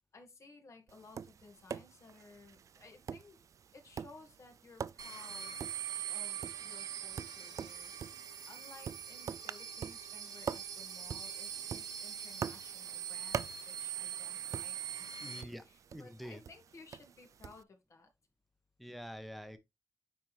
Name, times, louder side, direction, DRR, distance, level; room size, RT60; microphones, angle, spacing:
voice 1, 0.1-3.4 3.7-5.7 6.1-18.1, left 3 dB, 50° left, 1.9 m, -57 dB
Tap, 0.9-17.6, right 7 dB, 60° right, 0.3 m, -46 dB
sound 1, 5.0-15.4, right 9 dB, 85° right, 1.1 m, -43 dB
voice 2, 15.2-15.6 15.9-16.4 18.8-19.6, equal, ahead, 1.1 m, -46 dB
9.2 x 4.4 x 3.3 m
wide cardioid pair, 125°, 6 cm